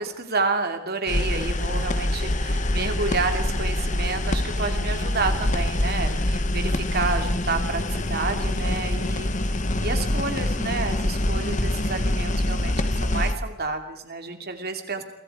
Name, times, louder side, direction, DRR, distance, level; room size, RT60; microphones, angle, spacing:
voice 1, 0.0-9.3 9.8-15.0, right 4 dB, 45° right, 6 dB, 2.8 m, -30 dB
sound 1, 1.1-13.3, left 1 dB, 35° left, 1.3 m, -25 dB
29.5 x 24.5 x 4.9 m, 0.96 s
head